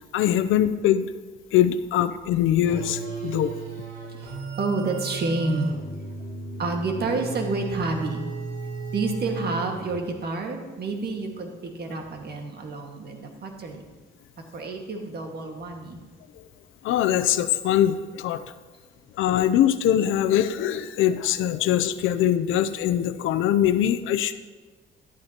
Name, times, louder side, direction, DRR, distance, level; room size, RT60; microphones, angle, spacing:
voice 1, 0.1-1.1 1.5-3.5 16.8-18.4 19.2-24.3, left 11 dB, 85° left, 12 dB, 0.6 m, -22 dB
sound 1, 2.6-10.1, right 4 dB, 85° right, 3.6 m, -35 dB
voice 2, 4.2-5.8 6.6-8.2 8.9-13.8 14.5-16.0, right 3 dB, 55° right, 2 dB, 1.8 m, -29 dB
12.5 x 12.0 x 2.9 m, 1.3 s
cardioid pair, 90°, 20 cm